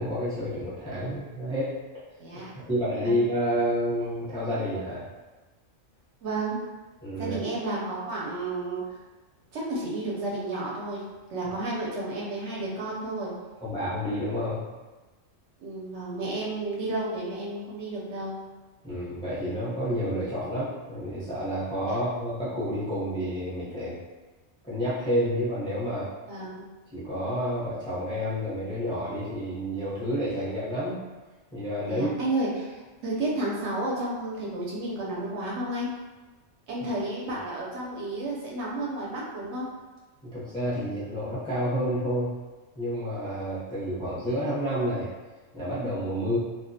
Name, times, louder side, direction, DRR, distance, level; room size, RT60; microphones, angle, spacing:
voice 1, 0.0-1.7 2.6-5.0 7.0-7.4 13.6-14.6 18.8-24.0 24.6-26.1 26.9-31.0 31.5-32.1 40.2-42.3 42.7-45.1 45.5-46.4, equal, 5° left, -10 dB, 0.5 m, -29 dB
voice 2, 2.2-2.5 3.0-3.2 6.2-6.6 7.2-9.0 9.5-11.0 11.3-13.3 15.6-18.4 21.9-22.0 26.3-26.6 31.9-35.9 36.7-39.7, right 2 dB, 70° right, -5 dB, 0.8 m, -32 dB
2.2 x 2.2 x 2.6 m, 1.2 s
omnidirectional pair, 1.3 m